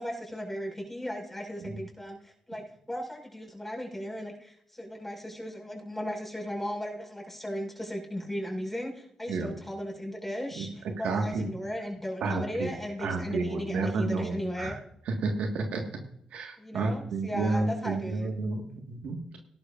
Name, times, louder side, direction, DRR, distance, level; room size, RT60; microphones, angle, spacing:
voice 1, 0.0-14.7 16.6-18.3, equal, 10° left, 0 dB, 5.3 m, -36 dB
voice 2, 11.0-11.5 12.2-12.7 13.0-14.8 15.0-15.8 16.3-19.4, right 3 dB, 80° right, 3 dB, 1.6 m, -31 dB
17.5 x 11.5 x 2.5 m, 0.69 s
supercardioid pair, 50°, 2 cm